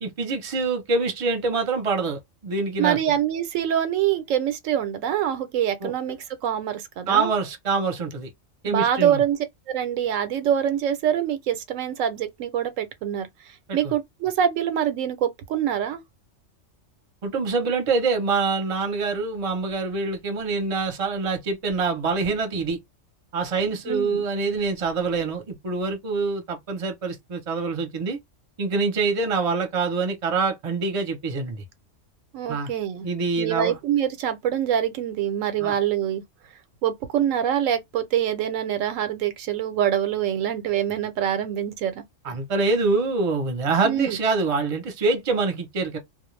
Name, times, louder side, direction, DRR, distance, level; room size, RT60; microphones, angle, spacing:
voice 1, 0.0-3.0 5.8-5.9 7.1-8.3 8.6-9.2 13.7-13.9 17.2-22.8 23.3-28.2 28.6-31.6 32.5-32.7 33.0-33.8 35.6-35.7 42.2-46.0, right 4 dB, 35° right, 0.6 m, -25 dB
voice 2, 2.8-7.3 8.7-9.4 9.7-13.3 13.7-16.0 23.9-24.3 32.3-33.1 33.4-36.2 36.8-42.0 43.8-44.2, right 10 dB, 85° right, 1.0 m, -25 dB
2.3 x 2.1 x 3.1 m
omnidirectional pair, 1.3 m